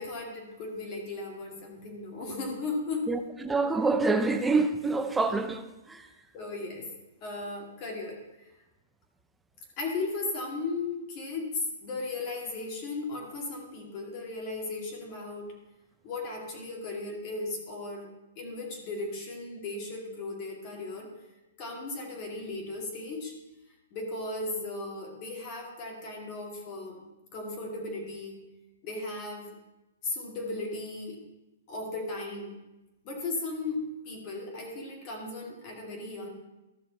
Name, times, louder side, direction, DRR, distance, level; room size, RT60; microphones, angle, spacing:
voice 1, 0.0-3.1 3.4-3.5 6.3-6.9 7.2-8.5 9.8-15.5 16.0-21.1 21.6-23.3 23.9-27.0 27.3-28.4 28.8-29.6 30.0-31.2 31.7-32.6 33.0-36.3, left 3 dB, 35° left, 2.4 m, -36 dB
voice 2, 3.1-6.1, right 3 dB, 5° right, 0.6 m, -27 dB
13.0 x 6.4 x 4.1 m
hypercardioid pair, 150°, 0 cm